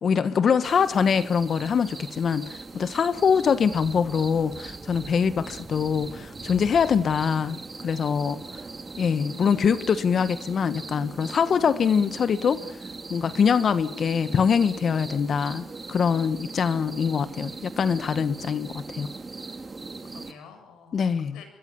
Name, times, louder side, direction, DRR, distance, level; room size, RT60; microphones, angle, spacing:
voice 1, 0.0-8.4 9.0-12.6 13.1-19.1 20.9-21.4, left 6 dB, 50° left, 13 dB, 1.4 m, -24 dB
sound 1, 0.6-20.3, right 3 dB, 25° right, 2.4 m, -40 dB
voice 2, 18.4-18.8 19.8-19.9 20.1-21.4, left 7 dB, 85° left, 7 dB, 7.3 m, -50 dB
26.0 x 23.0 x 7.1 m, 0.63 s
cardioid pair, 90°, 0 cm